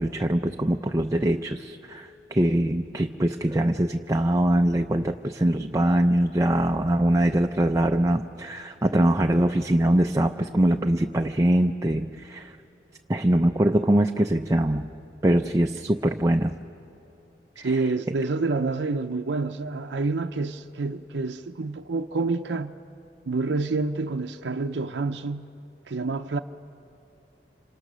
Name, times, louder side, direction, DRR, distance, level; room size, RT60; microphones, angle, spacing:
voice 1, 0.0-12.5 13.1-14.9 15.2-16.5 17.6-17.7, right 1 dB, 20° right, 0.5 m, -23 dB
voice 2, 17.6-22.7 23.3-25.5 25.9-26.4, right 3 dB, 90° right, 0.6 m, -28 dB
27.0 x 26.5 x 6.2 m
head